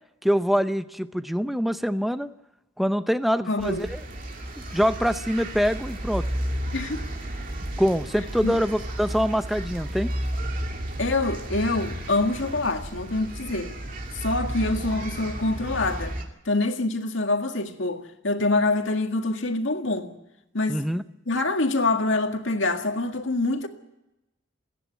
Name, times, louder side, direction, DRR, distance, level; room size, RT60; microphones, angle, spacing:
voice 1, 0.2-2.3 2.8-4.0 4.7-6.2 7.8-10.1 20.7-21.0, equal, ahead, 0.6 m, -24 dB
voice 2, 3.5-3.9 6.7-7.1 8.4-8.6 11.0-13.8 14.1-16.2 16.5-20.1 20.5-20.8 21.3-23.7, left 2 dB, 70° left, 2.0 m, -25 dB
sound 1, 3.6-16.2, right 1 dB, 40° right, 2.5 m, -33 dB
28.5 x 10.5 x 9.4 m
head